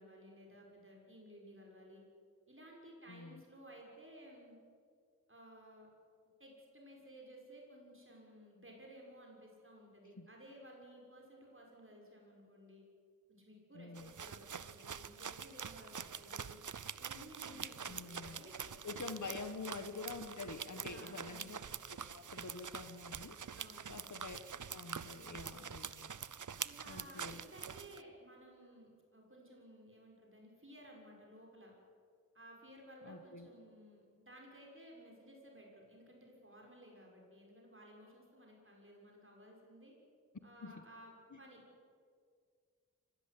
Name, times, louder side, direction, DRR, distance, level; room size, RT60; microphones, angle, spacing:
voice 1, 0.0-2.0 2.5-4.6 5.3-5.9 6.4-12.8 13.3-20.0 20.8-21.5 23.5-24.0 26.6-31.7 32.3-39.9 40.4-41.6, equal, 45° right, -1 dB, 6.6 m, -57 dB
voice 2, 3.1-3.4 10.2-10.3 13.7-14.1 17.9-18.4 18.8-21.6 21.9-23.5 23.9-24.4 24.7-26.1 26.9-27.4 33.0-33.5 40.6-40.9 41.3-41.4, left 4 dB, 75° left, 9 dB, 1.5 m, -47 dB
sound 1, 14.0-28.0, right 7 dB, 85° right, 0.7 m, -46 dB
24.5 x 16.0 x 9.9 m, 2.1 s
wide cardioid pair, 50°, 30 cm